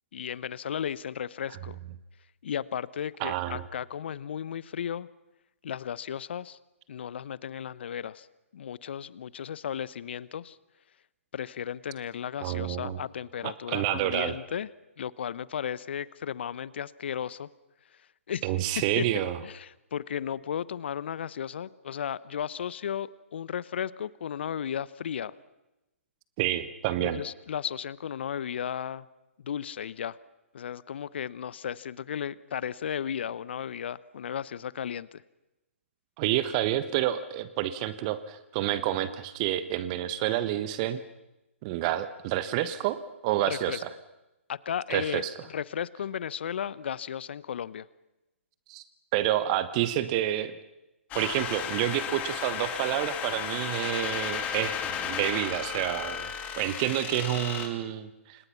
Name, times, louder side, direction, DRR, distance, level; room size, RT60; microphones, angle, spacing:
voice 1, 0.1-1.8 2.4-5.1 5.6-6.6 6.9-8.3 8.5-10.6 11.3-14.7 15.0-17.5 18.3-18.5 19.0-19.1 19.4-25.3 27.0-29.1 29.4-30.2 30.5-35.2 43.5-43.8 44.5-45.2 45.5-47.9, left 8 dB, 55° left, 20 dB, 0.9 m, -35 dB
voice 2, 3.2-3.6 12.4-13.0 13.4-14.3 18.4-19.4 26.4-27.2 36.2-41.0 41.6-43.8 44.9-45.3 48.7-48.8 49.1-50.6 51.1-56.3 56.6-58.5, right 13 dB, 30° right, 13 dB, 1.3 m, -29 dB
sound 1, 51.1-57.7, left 8 dB, 20° left, 2.7 m, -34 dB
29.5 x 26.5 x 5.9 m, 0.97 s
figure-of-eight pair, 130°, 7 cm